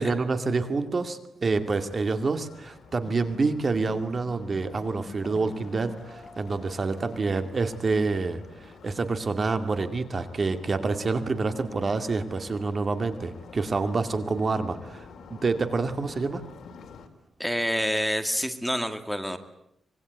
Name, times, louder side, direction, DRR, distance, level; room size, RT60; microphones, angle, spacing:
voice 1, 0.0-16.5, right 3 dB, 40° right, 8 dB, 2.3 m, -27 dB
sound 1, 1.5-17.1, left 5 dB, 75° left, 3.3 m, -49 dB
sound 2, 3.0-8.0, left 4 dB, 50° left, 7.5 m, -47 dB
voice 2, 17.4-19.4, equal, ahead, 8 dB, 2.1 m, -27 dB
25.5 x 22.5 x 9.4 m, 0.79 s
wide cardioid pair, 125°, 0 cm